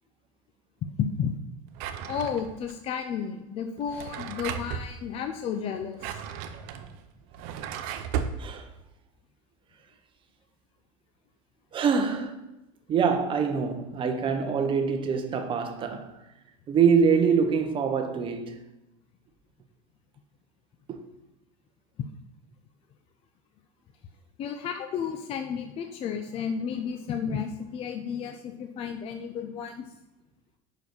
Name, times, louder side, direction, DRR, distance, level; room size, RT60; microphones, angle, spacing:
voice 1, 1.0-1.3 2.1-6.2 24.4-29.9, left 7 dB, 35° left, 0.5 m, -32 dB
Drawer open or close, 1.7-2.7 3.8-4.9 5.8-8.4, right 8 dB, 65° right, 0.6 m, -35 dB
voice 2, 11.7-12.4 12.9-16.2 16.7-18.6 20.9-21.0, right 6 dB, 30° right, 0.8 m, -25 dB
5.3 x 4.7 x 6.1 m
supercardioid pair, 130°, 16 cm